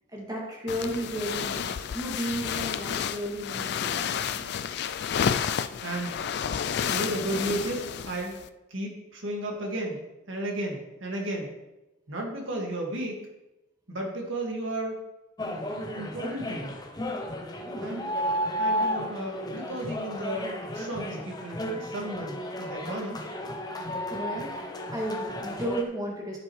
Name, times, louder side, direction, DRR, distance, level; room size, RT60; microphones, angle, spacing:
voice 1, 0.1-4.5 17.6-18.1 24.1-24.5 24.9-26.4, equal, 20° right, -3 dB, 2.4 m, -34 dB
sound 1, 0.7-8.5, left 7 dB, 55° left, 0.3 m, -31 dB
voice 2, 5.8-6.2 6.9-8.4 8.7-11.5 12.1-13.2 13.9-15.0 16.0-16.8 17.8-18.0 18.6-23.3, right 1 dB, 70° right, 0 dB, 2.1 m, -34 dB
sound 2, 15.4-25.8, equal, 20° left, 0.8 m, -33 dB
11.5 x 7.5 x 3.3 m, 0.99 s
head